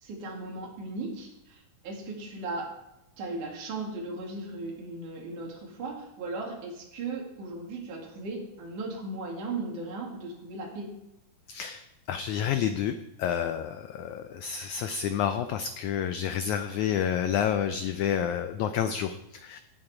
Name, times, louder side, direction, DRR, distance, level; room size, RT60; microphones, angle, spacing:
voice 1, 0.0-2.7 3.2-11.0, right 3 dB, 60° right, -2 dB, 3.9 m, -37 dB
voice 2, 11.5-11.8 12.1-19.6, left 9 dB, 90° left, 9 dB, 1.6 m, -29 dB
17.5 x 7.9 x 4.9 m, 0.88 s
omnidirectional pair, 4.1 m